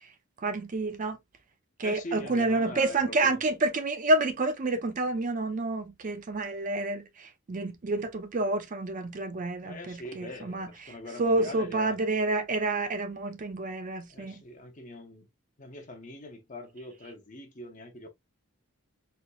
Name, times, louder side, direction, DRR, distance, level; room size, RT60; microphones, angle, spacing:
voice 1, 0.4-1.2 1.8-10.7 11.2-14.4, right 2 dB, 40° right, 0.5 m, -29 dB
voice 2, 1.8-3.4 9.6-12.0 14.1-15.3 15.6-18.1, left 1 dB, 35° left, 0.8 m, -42 dB
4.2 x 2.8 x 2.2 m
head